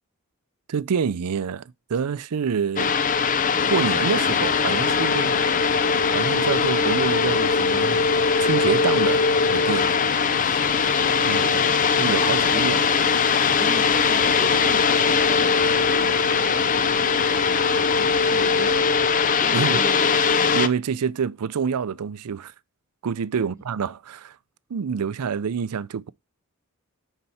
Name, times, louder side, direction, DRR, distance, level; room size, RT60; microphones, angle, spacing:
voice 1, 0.7-3.0 3.7-5.5 6.1-8.0 8.4-10.0 10.4-10.6 11.2-11.7 12.0-12.9 19.5-19.8 20.5-22.5 23.0-24.4 24.7-26.1, right 6 dB, 90° right, 0.5 m, -27 dB
sound 1, 2.8-20.7, left 5 dB, 35° left, 0.6 m, -21 dB
sound 2, 3.6-18.8, left 5 dB, 85° left, 0.9 m, -34 dB
voice 2, 9.8-10.2 13.5-15.7 15.9-18.9 19.4-20.2 23.4-23.5, right 2 dB, 15° right, 1.2 m, -40 dB
9.9 x 4.4 x 4.1 m
head